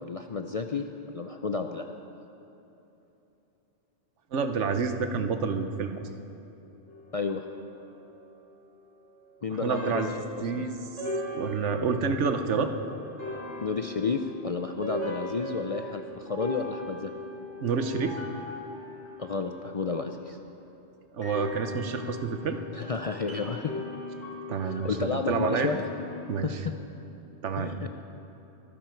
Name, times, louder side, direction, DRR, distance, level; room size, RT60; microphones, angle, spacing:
voice 1, 0.0-2.0 7.1-7.4 9.4-10.1 10.5-10.6 13.6-17.1 19.2-20.4 22.7-23.8 24.6-25.8 26.4-26.7 27.6-28.0, left 4 dB, 45° left, 5 dB, 0.5 m, -31 dB
voice 2, 4.3-6.0 9.6-10.8 11.3-12.7 17.6-18.2 21.1-22.6 24.5-25.7 26.3-26.6 27.4-27.7, right 5 dB, 80° right, 7 dB, 1.2 m, -29 dB
sound 1, 6.9-8.5 9.7-19.7 21.2-26.3, left 1 dB, 75° left, 4.8 m, -39 dB
24.0 x 10.5 x 4.5 m, 3.0 s
omnidirectional pair, 1.2 m